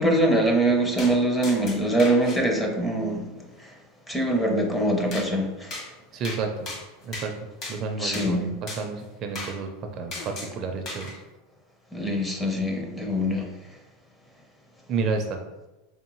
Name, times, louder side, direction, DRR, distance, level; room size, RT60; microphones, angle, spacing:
voice 1, 0.0-3.3 4.1-5.7 8.0-8.4 11.9-13.5, right 1 dB, 10° left, 1 dB, 0.6 m, -23 dB
sound 1, 1.0-1.1 1.4-2.4 5.1-5.3 5.7-5.9 6.2-6.4 6.7-7.3 7.6-7.8 8.1-8.3 8.7-8.8 9.4-9.5 10.1-10.5 10.9-11.1, left 2 dB, 35° left, 1.1 m, -35 dB
voice 2, 6.1-6.5 7.0-7.3 7.7-9.7 10.0-11.1 14.9-15.4, right 4 dB, 40° right, 4 dB, 0.4 m, -30 dB
3.5 x 3.5 x 3.0 m, 1.0 s
supercardioid pair, 145°, 0 cm